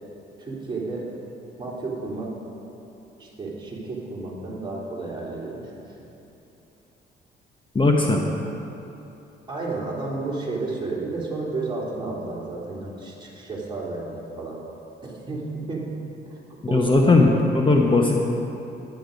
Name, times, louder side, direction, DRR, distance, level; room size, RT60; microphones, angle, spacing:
voice 1, 0.4-1.0 1.6-2.3 3.2-5.9 9.5-14.6 15.0-15.8 16.7-17.4, right 3 dB, 25° right, -5 dB, 3.2 m, -32 dB
voice 2, 7.7-8.2 16.6-18.2, left 3 dB, 25° left, 0 dB, 1.0 m, -18 dB
11.0 x 10.5 x 5.2 m, 3.0 s
cardioid pair, 90°, 20 cm